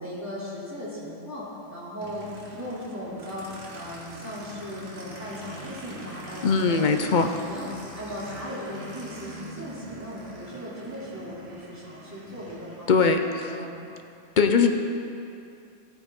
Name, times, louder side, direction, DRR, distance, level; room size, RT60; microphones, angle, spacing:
voice 1, 0.0-3.4 3.7-7.6 7.9-13.0 13.5-13.8, equal, 15° right, -9 dB, 3.1 m, -37 dB
Aircraft, 2.0-13.1, right 2 dB, 60° right, 1.7 m, -44 dB
voice 2, 6.4-7.3 12.9-13.6 14.4-14.7, left 5 dB, 50° left, 6 dB, 0.7 m, -21 dB
15.0 x 9.2 x 3.7 m, 2.6 s
omnidirectional pair, 1.2 m